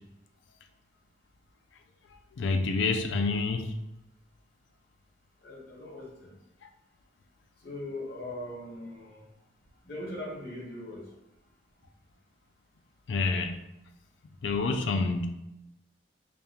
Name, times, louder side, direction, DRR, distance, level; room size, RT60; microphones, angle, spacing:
voice 1, 2.4-3.7 13.1-13.5 14.4-15.3, left 3 dB, 70° left, 0.4 m, -27 dB
voice 2, 5.4-6.3 7.6-9.2 9.8-11.1, left 1 dB, 55° left, 1.0 m, -40 dB
5.1 x 2.3 x 2.8 m
head